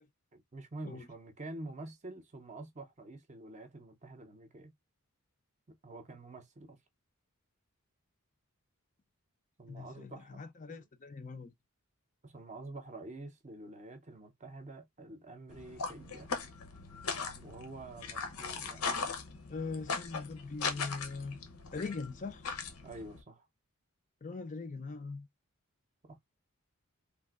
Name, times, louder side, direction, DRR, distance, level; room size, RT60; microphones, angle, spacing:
voice 1, 0.3-4.7 5.7-6.8 9.6-10.4 10.7-10.8 12.2-16.3 17.4-19.0 22.8-23.5 26.0-26.2, right 2 dB, 30° right, 0.6 m, -47 dB
voice 2, 9.7-11.5 19.5-21.4 21.7-22.4 24.2-25.3, left 4 dB, 35° left, 0.4 m, -41 dB
sound 1, 15.5-23.2, left 5 dB, 85° left, 0.8 m, -39 dB
3.6 x 2.5 x 2.4 m
head